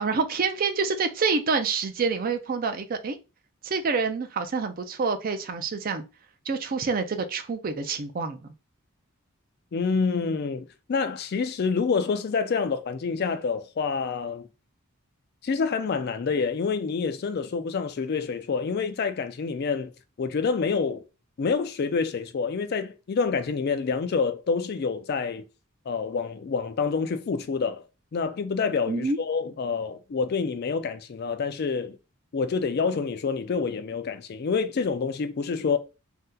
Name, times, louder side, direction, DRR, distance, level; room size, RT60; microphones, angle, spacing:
voice 1, 0.0-3.2 3.6-6.0 6.5-8.5 28.9-29.2, right 4 dB, 40° right, 0.4 m, -27 dB
voice 2, 9.7-14.5 15.4-19.9 20.2-21.0 21.4-25.4 25.9-27.9 28.1-32.0 32.3-35.8, left 5 dB, 50° left, 0.3 m, -27 dB
2.8 x 2.1 x 3.6 m
head